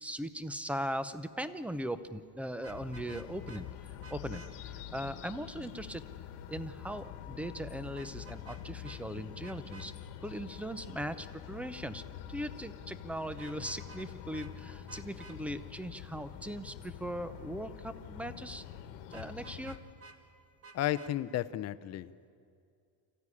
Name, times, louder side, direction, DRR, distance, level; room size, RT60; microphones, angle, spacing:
voice 1, 0.0-3.7 4.1-6.0 6.5-9.9 10.2-12.0 12.3-18.6 19.1-19.8, right 1 dB, 5° right, 12 dB, 0.6 m, -39 dB
Vehicle horn car horn honking, 2.6-3.6 4.0-4.5 8.0-8.6 8.8-9.0 9.4-9.9 13.3-14.1 14.3-14.5 14.9-15.4 19.1-20.2 20.6-21.1, right 4 dB, 35° right, 1.9 m, -52 dB
sound 1, 2.7-19.8, left 10 dB, 85° left, 1.6 m, -46 dB
voice 2, 20.7-22.3, left 13 dB, 40° left, 13 dB, 0.6 m, -33 dB
26.5 x 15.0 x 9.8 m, 2.4 s
cardioid pair, 150°, 42 cm